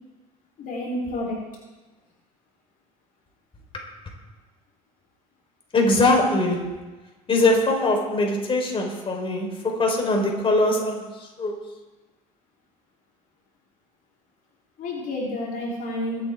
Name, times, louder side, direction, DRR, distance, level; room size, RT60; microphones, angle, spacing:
voice 1, 0.6-1.4 14.8-16.2, left 1 dB, 50° left, -4 dB, 3.5 m, -29 dB
voice 2, 5.7-6.7 7.3-11.1 11.4-11.6, left 2 dB, 30° left, 0 dB, 4.0 m, -21 dB
23.5 x 8.8 x 3.6 m, 1.2 s
hypercardioid pair, 65°, 18 cm